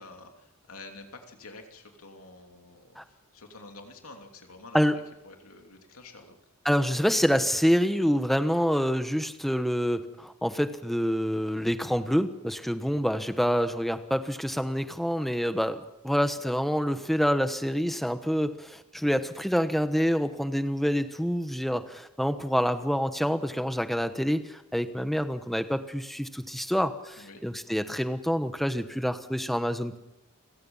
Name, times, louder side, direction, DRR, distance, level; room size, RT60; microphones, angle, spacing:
voice 1, 0.0-4.8 5.2-6.4 27.2-27.4, left 3 dB, 90° left, 3 dB, 3.0 m, -48 dB
voice 2, 6.6-30.0, equal, ahead, 9 dB, 1.1 m, -27 dB
29.5 x 17.0 x 5.6 m, 0.88 s
head